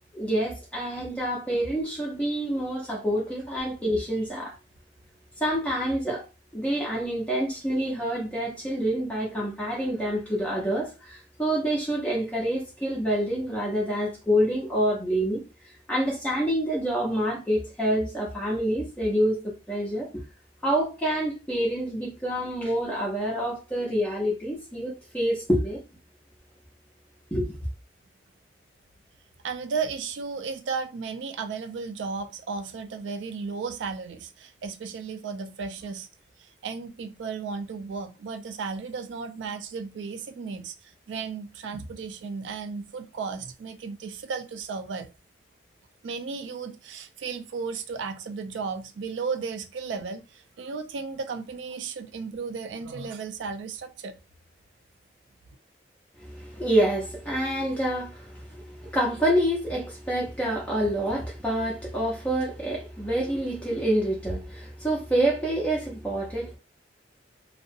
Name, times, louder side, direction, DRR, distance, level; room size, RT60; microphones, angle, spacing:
voice 1, 0.1-4.5 5.4-6.2 6.5-19.4 19.7-20.2 20.6-25.8 27.3-27.6 56.2-66.6, right 1 dB, 5° left, 0.6 m, -27 dB
voice 2, 29.4-36.1 36.4-45.1 46.0-54.1, right 5 dB, 85° right, 0.3 m, -34 dB
2.6 x 2.0 x 2.5 m
head